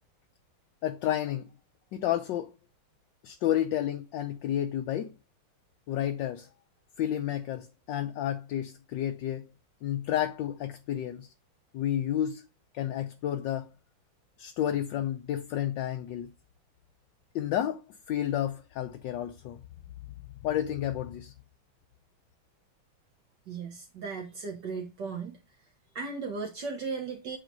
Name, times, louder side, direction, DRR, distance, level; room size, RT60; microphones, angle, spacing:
voice 1, 0.8-1.5 1.9-2.5 3.2-5.1 5.9-6.5 7.0-9.5 9.8-11.3 11.7-12.4 12.7-13.7 14.4-16.3 17.3-17.8 18.1-19.6 20.4-21.3, left 11 dB, 70° left, 1.2 m, -31 dB
voice 2, 23.5-25.4 25.9-27.4, right 4 dB, 60° right, 1.7 m, -36 dB
8.8 x 3.1 x 5.3 m
omnidirectional pair, 2.3 m